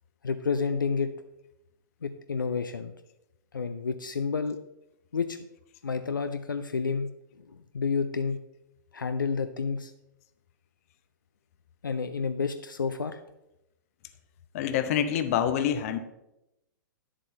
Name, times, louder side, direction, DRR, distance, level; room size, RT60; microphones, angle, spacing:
voice 1, 0.2-1.1 2.0-2.9 3.5-4.6 5.1-5.4 5.8-7.1 7.4-8.4 8.9-9.9 11.8-13.2, left 5 dB, 75° left, 10 dB, 0.5 m, -30 dB
voice 2, 14.5-16.0, left 9 dB, 45° left, 11 dB, 0.7 m, -26 dB
10.0 x 7.4 x 3.2 m, 0.89 s
figure-of-eight pair, 110°, 11 cm